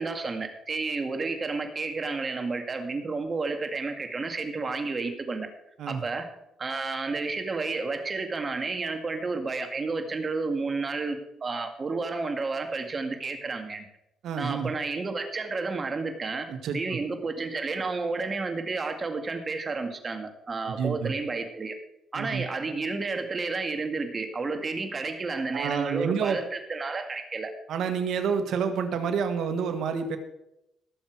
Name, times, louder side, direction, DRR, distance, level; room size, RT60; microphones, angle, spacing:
voice 1, 0.0-5.5 5.9-6.3 6.6-13.9 14.4-16.5 16.7-21.8 22.1-27.5, right 3 dB, 35° right, 6 dB, 2.0 m, -31 dB
voice 2, 14.2-14.7 16.5-16.8 20.8-21.1 22.2-22.4 25.5-26.4 27.7-30.2, right 6 dB, 75° right, 7 dB, 1.8 m, -28 dB
18.5 x 7.3 x 4.7 m, 0.84 s
cardioid pair, 90°, 0 cm